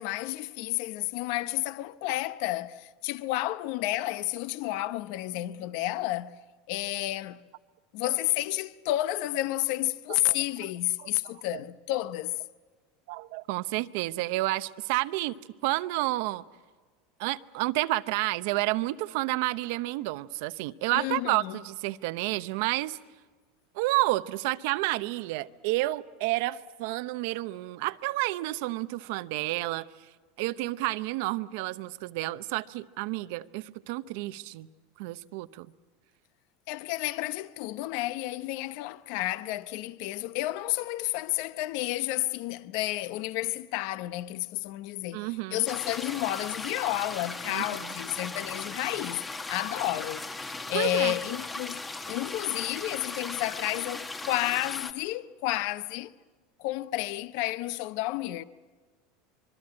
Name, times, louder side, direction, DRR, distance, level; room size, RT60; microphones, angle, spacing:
voice 1, 0.0-6.4 6.7-7.4 7.9-12.4 20.9-21.6 36.7-50.2 50.7-51.8 52.1-56.1 56.6-58.4, left 16 dB, 55° left, 0.8 m, -31 dB
voice 2, 11.0-11.6 13.1-15.4 15.6-16.4 17.2-23.0 23.7-29.8 30.4-34.7 35.0-35.7 45.1-45.6 47.5-47.9 50.7-51.2, right 19 dB, 65° right, 0.7 m, -30 dB
sound 1, 45.7-54.9, left 3 dB, 15° left, 1.2 m, -38 dB
25.0 x 23.5 x 8.7 m
supercardioid pair, 155°, 0 cm